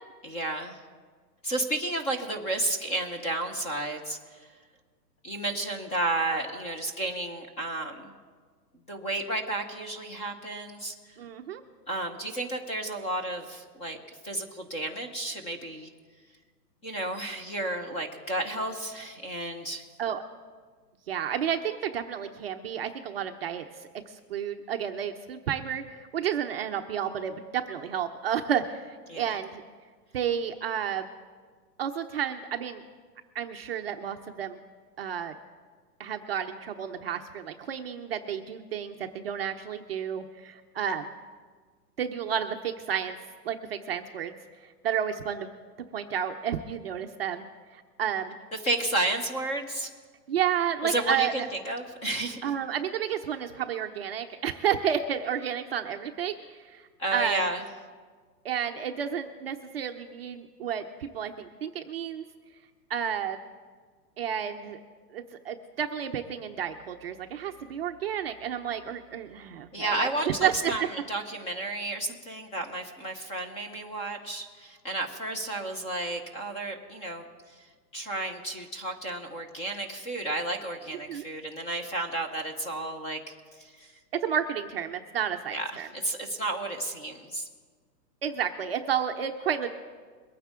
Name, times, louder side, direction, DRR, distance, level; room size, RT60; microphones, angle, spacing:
voice 1, 0.2-0.8 1.4-4.5 5.2-8.2 8.9-11.2 11.9-14.0 14.2-15.9 16.8-19.9 29.1-29.4 48.6-49.9 50.8-52.4 57.0-57.6 69.7-77.7 77.9-83.2 83.6-83.9 85.5-87.5, right 2 dB, 15° left, 4 dB, 1.0 m, -32 dB
voice 2, 11.2-11.6 20.0-20.2 21.1-23.9 24.3-29.6 30.1-31.0 31.8-32.8 33.3-34.6 35.0-35.3 36.0-41.1 42.0-43.2 43.4-44.4 44.8-45.5 45.9-47.5 47.7-48.4 50.3-51.3 52.4-56.8 57.1-57.4 58.4-62.2 62.9-63.4 64.2-64.8 65.1-70.7 81.1-81.2 84.2-85.9 88.2-89.7, right 8 dB, 40° right, 5 dB, 0.7 m, -31 dB
23.0 x 9.3 x 3.7 m, 1.5 s
hypercardioid pair, 160°, 49 cm